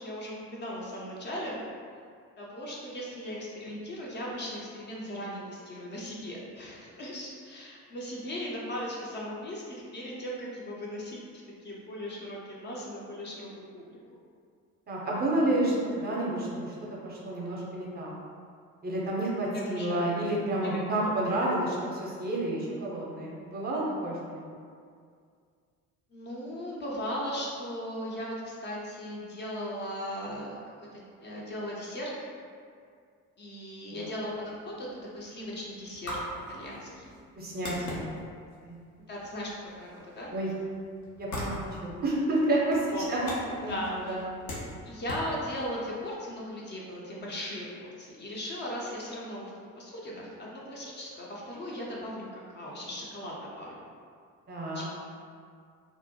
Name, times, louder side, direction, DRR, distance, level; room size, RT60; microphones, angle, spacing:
voice 1, 0.0-1.6 2.4-11.2 11.6-14.0 19.5-20.1 20.5-21.4 26.1-32.1 33.4-34.9 35.1-36.2 36.5-37.1 39.1-39.5 39.8-39.9 40.1-40.3 42.9-43.1 43.7-44.2 44.9-53.7 54.7-54.8, equal, 25° left, -4 dB, 0.4 m, -38 dB
voice 2, 14.9-16.7 17.0-18.1 18.8-24.4 34.0-34.1 36.6-36.7 37.4-38.1 38.6-38.8 40.3-40.5 41.2-43.2 43.6-44.2 54.5-54.8, right 1 dB, 20° right, -4 dB, 0.6 m, -30 dB
sound 1, 34.4-46.2, left 1 dB, 85° left, 0.6 m, -42 dB
2.6 x 2.0 x 2.7 m, 2.2 s
figure-of-eight pair, 55°, 44 cm